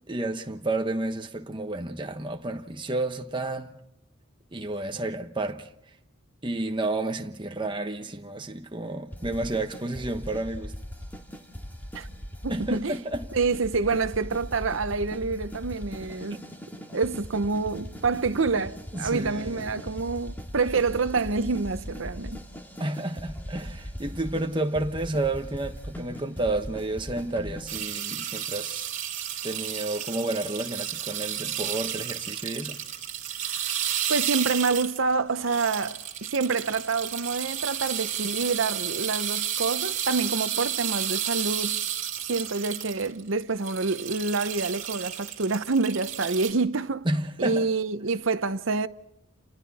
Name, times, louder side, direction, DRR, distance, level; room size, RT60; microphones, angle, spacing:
voice 1, 0.1-3.7 4.5-5.7 6.4-10.7 12.5-13.3 18.9-19.8 22.8-28.9 29.4-32.8 47.0-47.7, right 2 dB, 25° right, 1.1 m, -31 dB
sound 1, 9.1-27.8, equal, 10° left, 2.1 m, -40 dB
voice 2, 12.4-13.0 13.3-16.5 16.9-22.4 34.1-41.8 42.3-47.1 47.4-48.9, right 4 dB, 70° right, 0.8 m, -27 dB
sound 2, 27.7-35.1 35.4-43.2 43.6-46.5, right 10 dB, 40° right, 3.2 m, -32 dB
29.5 x 27.5 x 4.2 m
head